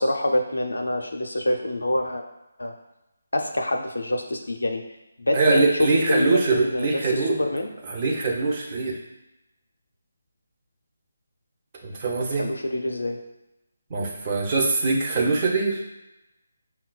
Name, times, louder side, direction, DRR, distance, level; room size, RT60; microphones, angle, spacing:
voice 1, 0.0-2.2 2.6-2.7 3.3-4.8 5.2-7.7 12.2-13.2, left 1 dB, 80° left, 3 dB, 0.5 m, -26 dB
voice 2, 5.3-7.4 7.8-9.0 11.8-12.5 13.9-15.8, right 3 dB, 35° right, -2 dB, 0.7 m, -23 dB
5.6 x 2.2 x 2.2 m, 0.95 s
figure-of-eight pair, 150°, 0 cm